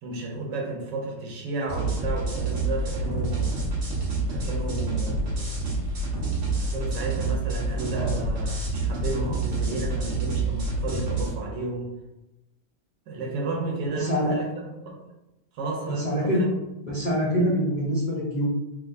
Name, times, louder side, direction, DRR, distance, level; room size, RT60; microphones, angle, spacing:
voice 1, 0.0-3.7 4.3-5.6 6.6-11.9 13.1-15.0 15.5-16.5 17.3-17.5, right 2 dB, 80° right, 0 dB, 1.4 m, -32 dB
sound 1, 1.7-11.3, right 2 dB, 50° right, 1.3 m, -28 dB
voice 2, 14.0-14.3 15.9-16.4 16.8-18.4, equal, 45° left, -9 dB, 0.5 m, -25 dB
3.5 x 3.0 x 2.5 m, 0.96 s
omnidirectional pair, 1.9 m